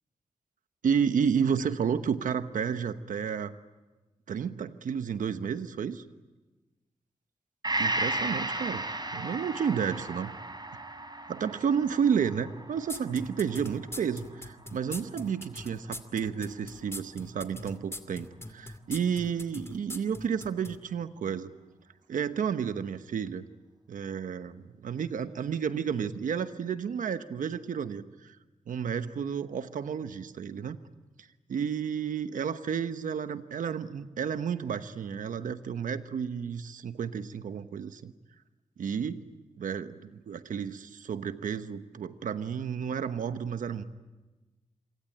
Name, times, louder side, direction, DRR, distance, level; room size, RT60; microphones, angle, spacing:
voice 1, 0.8-3.5 4.3-6.0 7.8-8.8 9.1-10.3 11.3-21.5 22.1-23.4 23.9-28.4 28.7-30.8 31.5-38.1 38.8-39.2 39.6-43.8, right 7 dB, 90° right, 11 dB, 1.1 m, -31 dB
Gong, 7.6-15.3 15.7-15.8, right 2 dB, 35° right, 4.6 m, -35 dB
sound 1, 12.9-20.8, left 1 dB, 20° left, 2.5 m, -41 dB
27.0 x 24.5 x 8.8 m, 1.2 s
cardioid pair, 40°, 13 cm